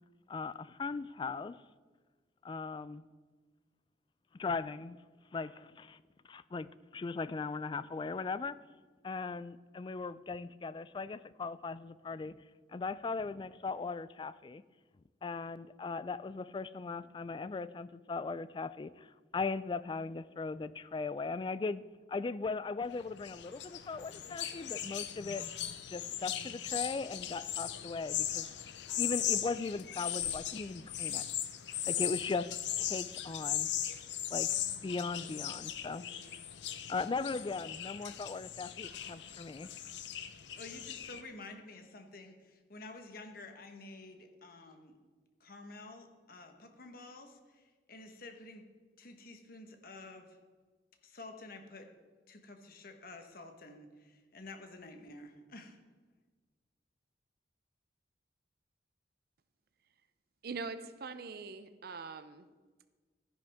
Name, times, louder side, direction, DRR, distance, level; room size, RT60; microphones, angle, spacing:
voice 1, 0.3-1.6 2.4-3.0 4.3-5.0 5.3-6.0 6.3-8.6 9.0-12.4 12.7-14.6 15.2-19.1 19.3-21.8 22.1-25.5 25.9-28.5 28.9-31.2 31.9-33.7 34.3-36.0 36.9-39.7, left 4 dB, 25° left, 16 dB, 0.3 m, -38 dB
sound 1, 22.9-41.2, left 11 dB, 75° left, 0.6 m, -38 dB
voice 2, 40.5-44.9 45.4-48.6 49.0-50.4 51.0-51.9 52.3-55.8, left 2 dB, 55° left, 5 dB, 1.3 m, -50 dB
voice 3, 60.4-62.5, right 4 dB, 60° right, 12 dB, 0.6 m, -42 dB
13.5 x 10.5 x 3.6 m, 1.4 s
head